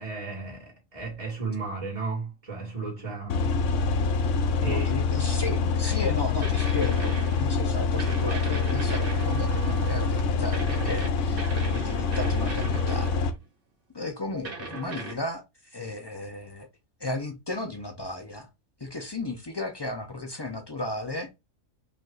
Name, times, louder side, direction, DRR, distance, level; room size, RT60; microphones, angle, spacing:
voice 1, 0.0-3.6 4.2-4.3 4.6-5.0, right 3 dB, 25° right, 2.3 m, -34 dB
sound 1, 3.3-13.3, left 4 dB, 65° left, 1.0 m, -26 dB
voice 2, 4.6-13.3 13.9-16.7 17.0-18.5 18.8-21.3, left 2 dB, 35° left, 0.4 m, -34 dB
sound 2, 6.4-7.5 8.0-10.2 10.5-13.3 14.4-15.1, right 3 dB, 40° right, 1.7 m, -38 dB
5.2 x 2.5 x 3.9 m
omnidirectional pair, 1.4 m